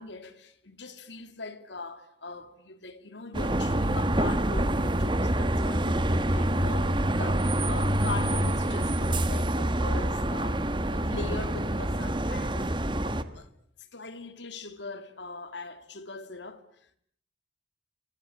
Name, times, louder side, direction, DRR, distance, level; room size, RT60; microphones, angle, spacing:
voice 1, 0.0-13.5 13.8-17.0, left 3 dB, 70° left, 2.4 m, -41 dB
sound 1, 3.3-13.2, right 1 dB, 25° right, 1.5 m, -26 dB
27.0 x 26.0 x 8.5 m
head